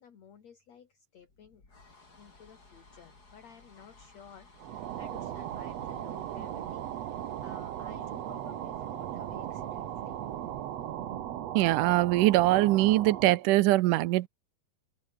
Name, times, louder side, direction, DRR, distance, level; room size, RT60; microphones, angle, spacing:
voice 1, 0.0-1.6 2.2-6.9 7.4-10.2, left 7 dB, 55° left, 3.5 m, -54 dB
sound 1, 1.2-11.7, left 3 dB, 30° left, 4.8 m, -59 dB
sound 2, 4.6-13.4, right 11 dB, 60° right, 2.1 m, -37 dB
voice 2, 11.6-14.3, right 17 dB, 80° right, 2.3 m, -23 dB
omnidirectional pair, 3.8 m